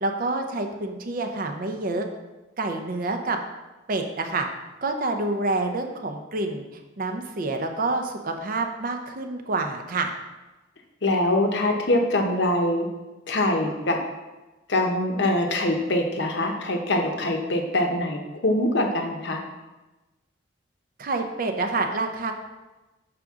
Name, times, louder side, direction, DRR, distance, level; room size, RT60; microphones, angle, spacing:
voice 1, 0.0-2.1 2.6-3.4 3.9-4.5 4.8-6.6 7.0-10.1 21.0-22.3, right 2 dB, 45° right, 4 dB, 0.5 m, -27 dB
voice 2, 11.0-12.9 13.3-14.0 14.7-19.4, left 1 dB, 60° left, 3 dB, 0.7 m, -23 dB
5.8 x 5.0 x 3.6 m, 1.1 s
head